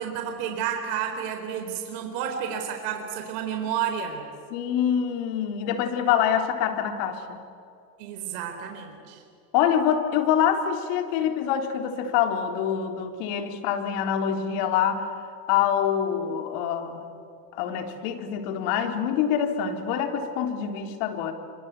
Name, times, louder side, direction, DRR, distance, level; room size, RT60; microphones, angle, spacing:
voice 1, 0.0-4.3 8.0-9.2, right 8 dB, 70° right, 4 dB, 4.3 m, -31 dB
voice 2, 4.5-7.4 9.5-15.1 15.5-17.1 17.5-21.3, left 8 dB, 65° left, 5 dB, 3.7 m, -25 dB
28.5 x 25.0 x 8.4 m, 2.5 s
supercardioid pair, 120°, 49 cm